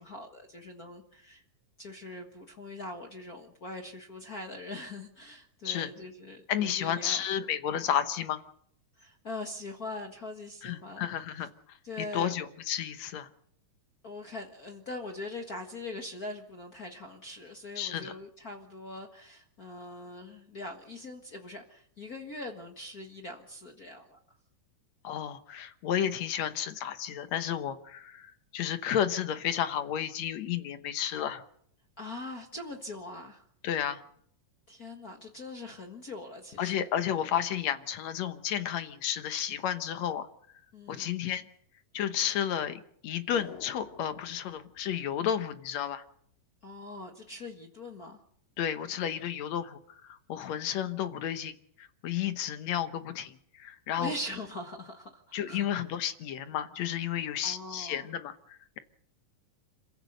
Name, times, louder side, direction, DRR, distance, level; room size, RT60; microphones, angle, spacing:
voice 1, 0.0-1.4 1.8-7.5 9.0-11.1 11.8-12.5 14.0-24.2 32.0-33.5 34.7-36.9 40.7-41.1 46.6-48.2 54.0-55.7 57.4-58.1, left 2 dB, 45° left, 4 dB, 1.2 m, -42 dB
voice 2, 6.5-8.4 10.6-13.3 17.8-18.1 25.0-31.4 33.6-34.0 36.6-40.3 40.9-41.5 41.9-46.0 48.6-51.5 51.8-54.1 55.3-58.8, left 9 dB, 65° left, 10 dB, 2.0 m, -32 dB
sound 1, 43.3-45.8 46.1-46.2, left 9 dB, 85° left, 3.4 m, -50 dB
27.0 x 15.5 x 6.6 m, 0.67 s
omnidirectional pair, 3.9 m